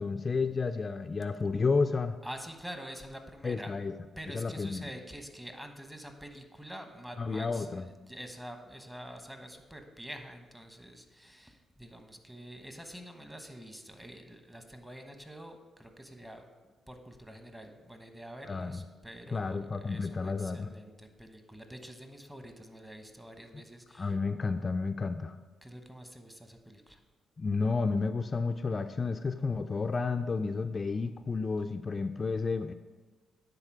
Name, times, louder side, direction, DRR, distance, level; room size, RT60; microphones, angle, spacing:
voice 1, 0.0-2.2 3.4-3.9 4.3-4.9 7.2-7.9 18.5-18.8 19.3-20.7 24.0-25.3 27.4-32.7, left 4 dB, 40° left, 8 dB, 0.3 m, -31 dB
voice 2, 2.2-3.9 4.2-24.2 25.6-27.0, equal, 10° right, 6 dB, 1.1 m, -47 dB
9.6 x 3.9 x 4.8 m, 1.3 s
supercardioid pair, 55°, 0 cm